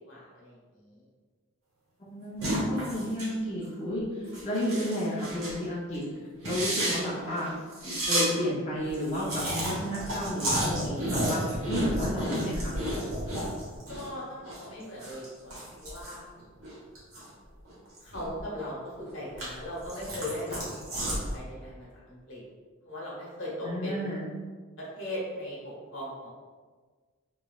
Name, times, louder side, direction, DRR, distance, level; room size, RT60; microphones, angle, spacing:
voice 1, 0.1-1.0 13.9-16.2 18.0-20.6 21.0-22.4 22.8-24.2 24.8-26.4, left 1 dB, 65° left, -6 dB, 1.1 m, -39 dB
voice 2, 2.0-6.0 6.4-7.5 7.8-12.8 23.6-24.3, equal, 30° left, -9 dB, 0.5 m, -32 dB
sound 1, 2.4-3.3 3.6-3.8 4.2-5.6 5.9-6.0 6.4-8.3 8.6-8.7 8.9-14.1 14.4-17.3 17.7-18.6 19.0-21.4, right 1 dB, 85° right, 1.0 m, -32 dB
3.1 x 2.9 x 2.3 m, 1.5 s
head